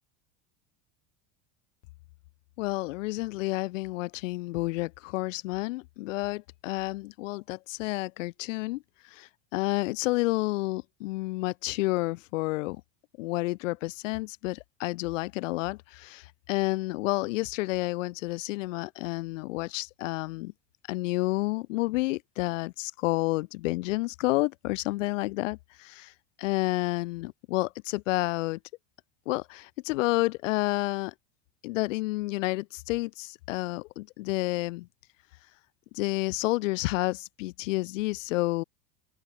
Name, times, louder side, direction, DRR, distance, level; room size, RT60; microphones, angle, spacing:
voice 1, 2.6-12.8 13.2-20.5 20.9-28.6 29.3-31.1 31.6-34.9 35.9-38.6, left 21 dB, 80° left, 6.5 m, -30 dB
supercardioid pair, 135°, 38 cm